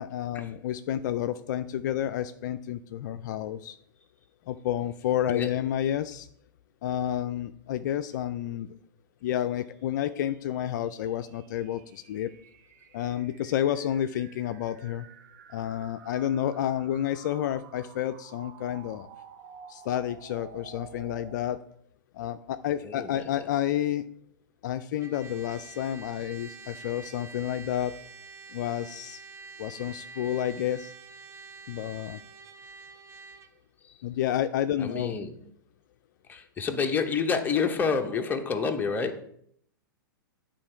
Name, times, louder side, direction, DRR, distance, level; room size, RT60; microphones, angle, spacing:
voice 1, 0.0-3.8 4.5-6.3 6.8-8.7 9.2-12.3 12.9-15.1 15.5-19.1 19.7-21.6 22.1-24.1 24.6-27.9 28.5-29.2 29.6-30.9 31.7-32.2 34.0-35.2, left 11 dB, 60° left, 10 dB, 0.4 m, -30 dB
sound 1, 9.5-21.4, right 6 dB, 50° right, 1.0 m, -51 dB
voice 2, 22.8-23.3 34.8-35.4 36.3-39.2, left 5 dB, 15° left, 4 dB, 0.9 m, -28 dB
Trumpet, 25.0-33.5, right 4 dB, 25° right, 0.8 m, -47 dB
8.7 x 3.8 x 4.5 m, 0.67 s
hypercardioid pair, 115°, 11 cm